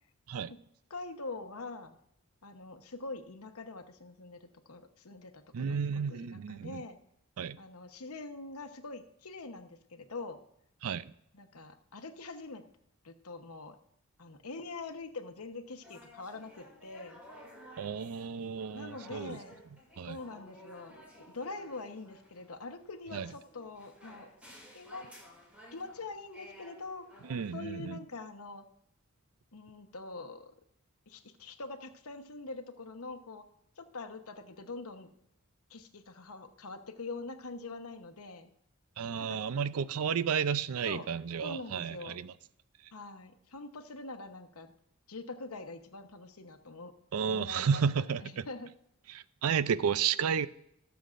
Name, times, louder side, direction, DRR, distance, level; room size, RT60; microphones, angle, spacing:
voice 1, 0.9-2.0 2.4-5.8 6.1-7.0 7.6-10.4 11.3-12.6 13.0-13.8 14.2-17.2 18.7-19.6 20.1-24.3 24.7-25.1 25.7-27.1 27.5-28.7 29.5-30.5 31.1-33.4 33.8-35.1 35.7-38.5 39.3-39.4 40.8-41.0 41.4-42.2 42.9-44.7 45.1-46.9 47.3-48.7, left 3 dB, 80° left, 1.0 m, -44 dB
voice 2, 5.5-6.8 7.4-7.6 10.8-11.1 17.8-19.4 20.0-20.2 23.1-23.3 27.3-28.0 39.0-42.3 47.1-48.5 49.1-50.5, right 7 dB, 75° right, 0.4 m, -32 dB
sound 1, 15.8-27.5, equal, 5° right, 2.5 m, -54 dB
19.0 x 7.1 x 2.5 m
head